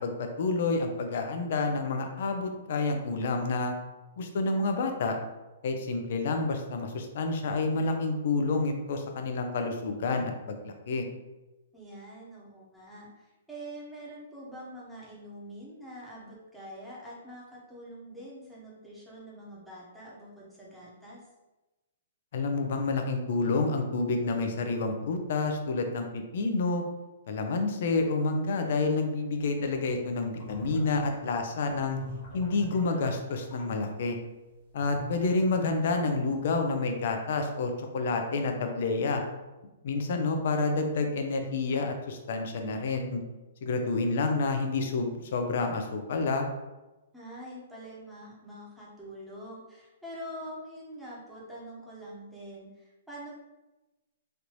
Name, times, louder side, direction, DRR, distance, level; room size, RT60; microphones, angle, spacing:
voice 1, 0.0-3.7 4.2-5.2 5.6-11.0 22.3-26.8 27.3-32.0 32.3-34.2 34.7-39.2 39.8-43.2 43.6-46.5, left 3 dB, 60° left, 5 dB, 0.5 m, -29 dB
voice 2, 11.7-21.2 47.1-53.3, equal, 5° right, -7 dB, 0.9 m, -45 dB
sound 1, 30.4-33.7 34.8-36.5, left 1 dB, 40° left, 0.8 m, -45 dB
3.2 x 2.5 x 2.9 m, 1.1 s
hypercardioid pair, 140°, 0 cm